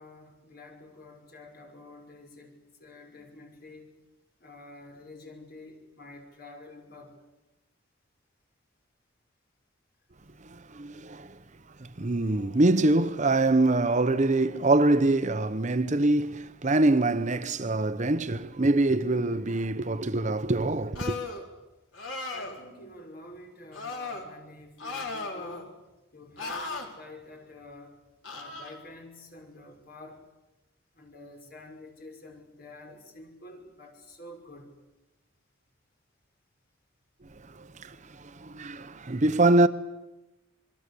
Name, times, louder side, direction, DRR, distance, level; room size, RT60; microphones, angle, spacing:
voice 1, 0.0-3.9 4.4-7.2 17.6-17.8 22.3-25.8 26.1-28.0 28.3-30.2 30.9-34.8, left 2 dB, 50° left, 5.9 m, -48 dB
voice 2, 10.5-11.4 11.8-21.2 37.6-39.7, right 2 dB, 40° right, 0.8 m, -24 dB
sound 1, 21.0-21.4 21.9-22.6 23.7-24.3 24.8-25.7 26.4-26.9 28.2-28.7, left 3 dB, 70° left, 4.5 m, -36 dB
27.5 x 22.5 x 8.4 m
head